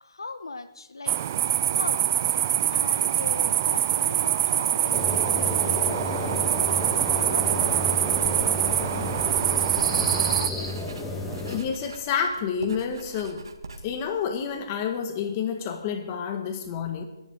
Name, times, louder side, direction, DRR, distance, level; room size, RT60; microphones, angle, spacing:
voice 1, 0.0-1.2 1.4-2.0 2.7-6.5 7.1-8.2 9.3-9.5, left 3 dB, 90° left, 11 dB, 1.0 m, -40 dB
sound 1, 1.1-10.5, right 11 dB, 40° right, 0.5 m, -24 dB
sound 2, 4.9-11.6, left 2 dB, 5° left, 1.5 m, -31 dB
Writing, 9.3-14.9, right 3 dB, 80° right, 1.7 m, -44 dB
voice 2, 11.5-13.4 13.8-17.0, left 7 dB, 30° left, 6 dB, 1.7 m, -29 dB
27.5 x 11.0 x 3.8 m, 0.97 s
hypercardioid pair, 155°, 2 cm